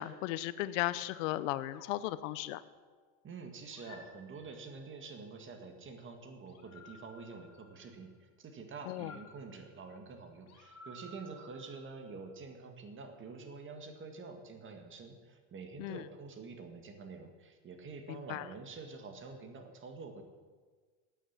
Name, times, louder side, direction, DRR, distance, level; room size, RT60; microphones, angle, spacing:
voice 1, 0.0-2.6 8.9-9.1 15.8-16.1 18.1-18.5, left 15 dB, 85° left, 16 dB, 0.7 m, -36 dB
sound 1, 1.7-3.1 3.7-5.0 6.5-8.2 8.9-12.4, left 1 dB, 45° left, 1.9 m, -57 dB
voice 2, 3.2-20.2, right 4 dB, 35° right, 5 dB, 1.9 m, -47 dB
9.2 x 8.8 x 8.7 m, 1.5 s
supercardioid pair, 115°, 37 cm